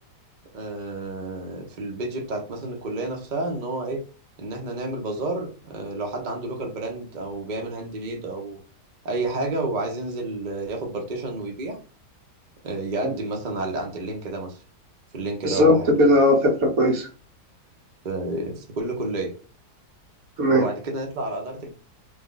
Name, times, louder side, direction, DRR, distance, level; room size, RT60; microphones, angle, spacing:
voice 1, 0.5-4.0 4.4-8.6 9.0-11.8 12.6-14.6 15.1-15.9 18.0-19.3 20.5-21.7, right 2 dB, 45° right, 1 dB, 0.6 m, -30 dB
voice 2, 15.4-17.1 20.4-20.6, left 1 dB, 60° right, 1 dB, 1.3 m, -18 dB
3.2 x 2.3 x 3.7 m, 0.35 s
omnidirectional pair, 1.7 m